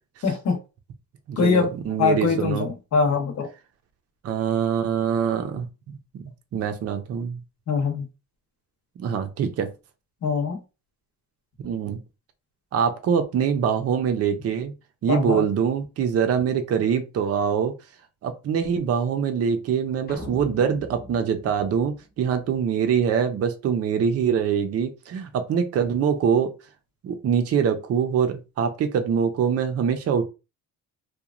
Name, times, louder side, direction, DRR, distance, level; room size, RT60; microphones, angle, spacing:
voice 1, 0.2-0.6 1.4-1.7 2.0-3.5 7.7-8.1 10.2-10.6 15.1-15.5, left 5 dB, 55° left, 1.0 m, -23 dB
voice 2, 1.3-2.7 4.2-6.2 6.5-7.4 9.0-9.7 11.6-12.0 12.7-14.7 15.0-17.7 18.2-26.5 27.0-30.3, right 7 dB, 45° right, 0.5 m, -24 dB
sound 1, 20.1-22.5, left 1 dB, 30° left, 0.8 m, -41 dB
2.9 x 2.2 x 2.4 m
cardioid pair, 130°, 33 cm